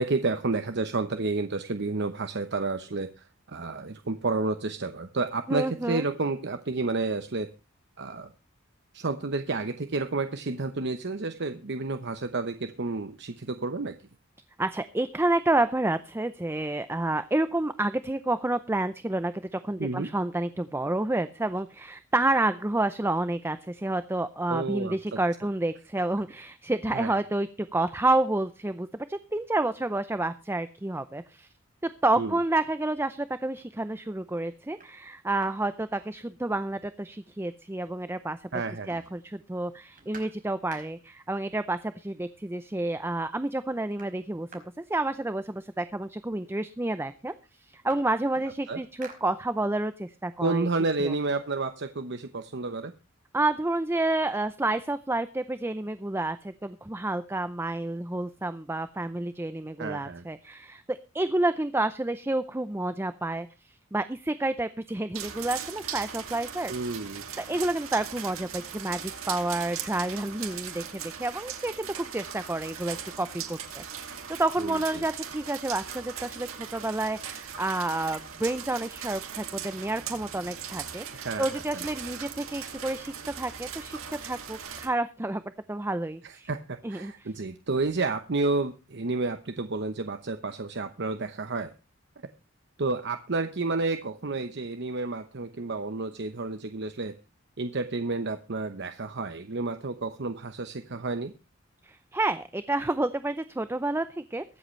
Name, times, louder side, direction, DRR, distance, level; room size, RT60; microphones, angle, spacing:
voice 1, 0.0-7.5 8.0-8.3 8.9-13.9 19.8-20.1 24.5-25.2 26.9-27.2 32.2-32.4 38.5-38.9 48.7-48.8 50.4-52.9 59.8-60.2 66.7-67.2 74.6-75.0 81.1-81.5 81.7-81.8 86.2-91.7 92.8-97.1 97.6-101.3, right 3 dB, 55° right, 9 dB, 0.9 m, -30 dB
voice 2, 5.5-6.1 14.6-31.5 31.8-38.5 38.9-50.7 51.0-51.1 53.3-85.4 85.7-86.5 86.8-87.3 101.8-104.4, right 2 dB, 10° right, 12 dB, 0.6 m, -29 dB
sound 1, 34.3-34.4 34.7-36.7 37.1-37.2 37.4-38.3 38.5-41.3 42.2-42.3 42.7-43.2 43.4-45.8 46.6-46.7 47.0-49.9 50.3-52.0, right 4 dB, 40° right, 4.6 m, -53 dB
sound 2, 65.1-84.9, right 8 dB, 85° right, 2.4 m, -39 dB
23.0 x 7.9 x 3.2 m, 0.31 s
head